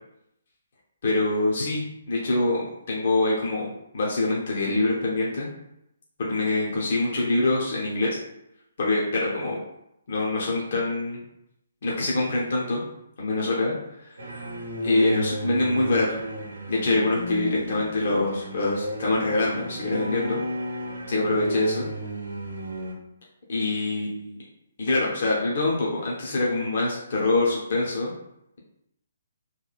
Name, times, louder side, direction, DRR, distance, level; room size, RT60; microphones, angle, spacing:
voice 1, 1.0-5.5 6.2-8.1 8.8-9.6 10.1-11.2 11.8-12.8 13.2-13.7 14.0-14.1 14.8-16.2 16.7-20.4 21.1-21.9 23.5-24.4 24.8-28.1, left 2 dB, 50° left, -4 dB, 0.6 m, -24 dB
sound 1, 14.2-22.9, right 1 dB, 70° right, 0.7 m, -34 dB
2.9 x 2.3 x 2.3 m, 0.82 s
figure-of-eight pair, 135°, 0 cm